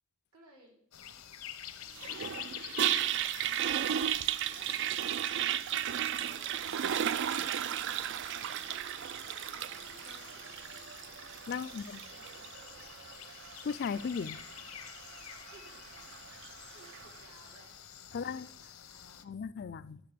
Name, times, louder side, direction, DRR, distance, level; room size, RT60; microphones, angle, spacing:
voice 1, 0.3-0.8 1.8-3.8 4.5-5.4 9.5-10.7 11.7-12.9 15.5-16.1 16.7-17.7 18.1-19.1, right 2 dB, 85° right, 3.8 m, -61 dB
sound 1, 0.9-19.2, left 10 dB, 80° left, 0.8 m, -49 dB
Toilet flush, 2.0-17.2, right 10 dB, 55° right, 0.3 m, -35 dB
voice 2, 11.5-12.0 13.6-14.4 18.1-18.5 19.2-20.0, left 6 dB, 45° left, 0.4 m, -36 dB
12.0 x 7.3 x 6.7 m
head